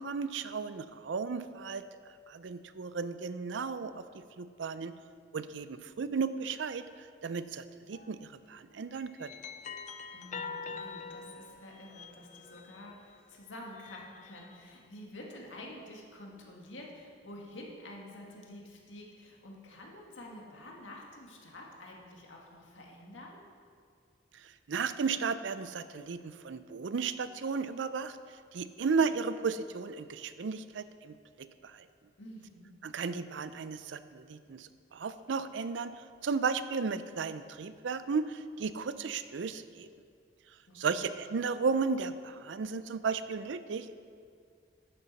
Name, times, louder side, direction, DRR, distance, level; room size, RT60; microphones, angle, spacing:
voice 1, 0.0-1.8 2.3-4.9 5.3-9.4 24.3-31.9 32.8-39.9 40.7-43.9, right 5 dB, 75° right, 13 dB, 0.5 m, -34 dB
sound 1, 7.9-8.2 8.9-13.0 13.6-14.7, left 5 dB, 40° left, 0.4 m, -45 dB
voice 2, 10.1-23.4 32.2-32.8 40.7-41.1, left 1 dB, 90° left, -1 dB, 1.8 m, -49 dB
11.0 x 9.4 x 4.1 m, 2.2 s
head